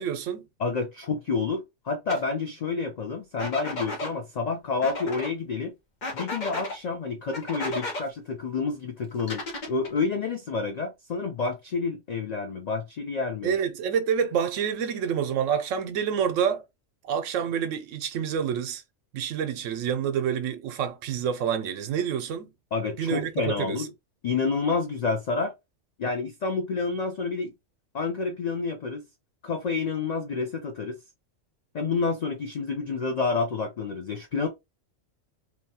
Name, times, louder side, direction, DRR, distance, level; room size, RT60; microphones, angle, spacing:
voice 1, 0.0-0.5 13.4-16.6 17.0-18.8 19.1-22.5 23.0-23.9, right 8 dB, 80° right, 0.9 m, -28 dB
voice 2, 0.6-5.7 6.1-13.5 22.7-23.9 24.2-25.5 26.0-27.5 27.9-29.0 29.4-31.0 31.7-34.5, left 4 dB, 85° left, 0.3 m, -29 dB
sound 1, 2.1-2.2 3.4-4.1 4.8-5.3 6.0-6.8 7.3-8.0 9.2-10.0, left 2 dB, 45° left, 0.8 m, -33 dB
2.8 x 2.2 x 2.7 m
omnidirectional pair, 1.3 m